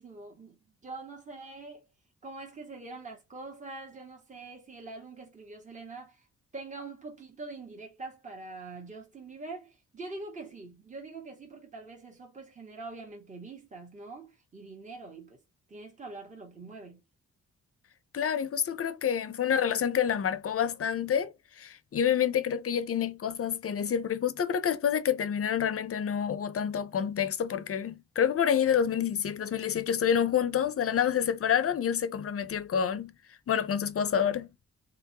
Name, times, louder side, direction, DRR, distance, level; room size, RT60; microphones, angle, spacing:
voice 1, 0.0-1.8 2.2-6.3 6.5-15.4 15.7-17.0, right 3 dB, 25° right, 1.4 m, -44 dB
voice 2, 18.1-33.1 33.5-34.5, left 8 dB, 50° left, 0.7 m, -28 dB
3.7 x 3.6 x 2.8 m
cardioid pair, 105°, 30 cm